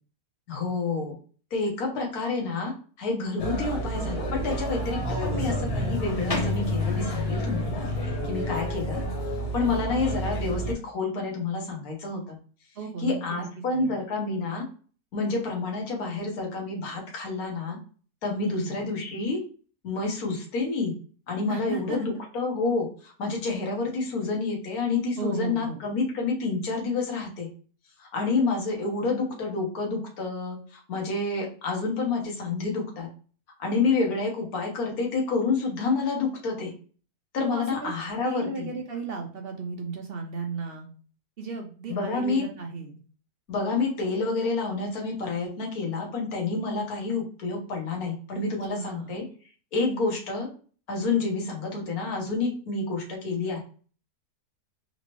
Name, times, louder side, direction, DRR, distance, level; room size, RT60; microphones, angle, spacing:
voice 1, 0.5-1.2 1.5-2.7 3.0-7.9 8.2-9.0 9.5-12.4 13.0-14.7 15.1-17.8 18.2-19.4 19.8-20.9 21.3-27.5 28.0-33.1 33.6-36.7 37.3-38.7 41.9-42.4 43.5-49.2 49.7-50.5 50.9-53.6, left 3 dB, 65° left, -1 dB, 1.6 m, -29 dB
sound 1, 3.4-10.7, equal, 40° left, 0.5 m, -29 dB
voice 2, 5.3-5.8 9.6-9.8 12.8-13.9 18.4-18.8 21.5-22.2 25.2-25.8 37.5-37.9 38.2-40.9 41.4-43.0 48.4-49.2, right 4 dB, 65° right, 2 dB, 0.6 m, -35 dB
3.9 x 3.0 x 3.0 m, 0.40 s
omnidirectional pair, 1.7 m